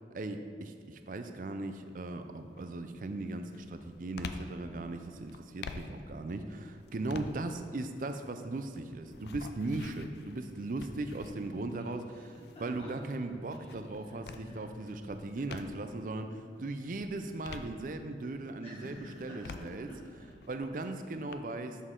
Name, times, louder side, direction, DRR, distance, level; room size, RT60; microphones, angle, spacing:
voice 1, 0.1-12.0 12.6-19.9 20.5-21.8, right 2 dB, 50° right, 7 dB, 0.4 m, -38 dB
sound 1, 1.6-2.0 2.5-16.0 16.5-18.3 18.8-21.3, left 4 dB, 70° left, 0.4 m, -48 dB
voice 2, 11.8-13.2 13.5-14.6 15.4-15.5 16.4-16.6 18.6-20.3, equal, 35° left, -8 dB, 1.2 m, -50 dB
7.2 x 6.3 x 3.7 m, 2.1 s
head